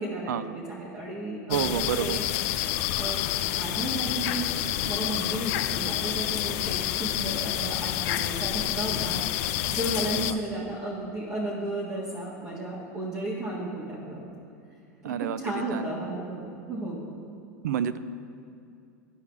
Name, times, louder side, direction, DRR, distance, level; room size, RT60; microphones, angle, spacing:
voice 1, 0.0-2.2 3.0-3.2 3.5-9.1 9.7-14.3 15.0-17.1, right 1 dB, 35° right, -6 dB, 1.6 m, -34 dB
sound 1, 1.5-10.3, left 13 dB, 60° left, 0.4 m, -28 dB
voice 2, 1.5-2.2 10.0-10.4 15.0-15.9 17.6-18.0, right 9 dB, 85° right, 14 dB, 0.4 m, -29 dB
14.0 x 4.8 x 3.5 m, 2.5 s
supercardioid pair, 120°, 9 cm